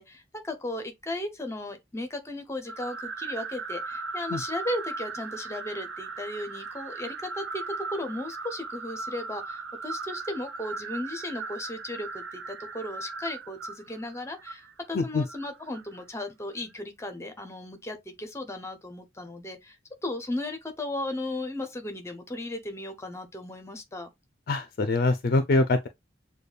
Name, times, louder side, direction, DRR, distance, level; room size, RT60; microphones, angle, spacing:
voice 1, 0.0-19.8 20.0-24.1, left 1 dB, 15° left, 0.7 m, -36 dB
sound 1, 2.7-16.0, right 4 dB, 80° right, 0.6 m, -38 dB
voice 2, 14.9-15.3 24.5-25.9, left 2 dB, 50° left, 0.4 m, -24 dB
6.7 x 2.3 x 2.3 m
head